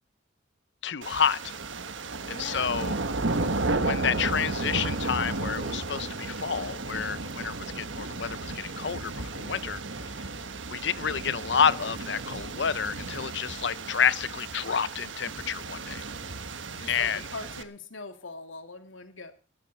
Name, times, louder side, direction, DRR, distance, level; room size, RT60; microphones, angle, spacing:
voice 1, 0.8-1.5 2.3-3.0 3.7-9.8 10.1-10.2 10.7-16.0 16.9-17.2, left 7 dB, 65° left, 0.6 m, -29 dB
sound 1, 1.0-17.6, right 3 dB, 75° right, 1.4 m, -33 dB
voice 2, 2.2-2.9 16.7-19.3, left 3 dB, 90° left, 2.6 m, -42 dB
17.0 x 14.0 x 4.3 m
head